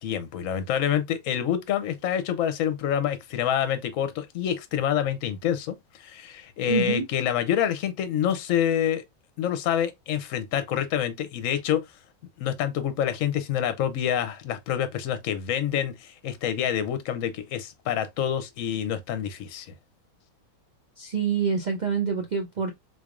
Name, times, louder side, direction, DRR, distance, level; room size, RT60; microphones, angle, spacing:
voice 1, 0.0-9.0 9.4-11.8 12.4-19.7, left 10 dB, 65° left, 1.0 m, -27 dB
voice 2, 6.7-7.1 21.0-22.7, right 6 dB, 80° right, 0.4 m, -26 dB
4.0 x 3.3 x 2.4 m
omnidirectional pair, 1.6 m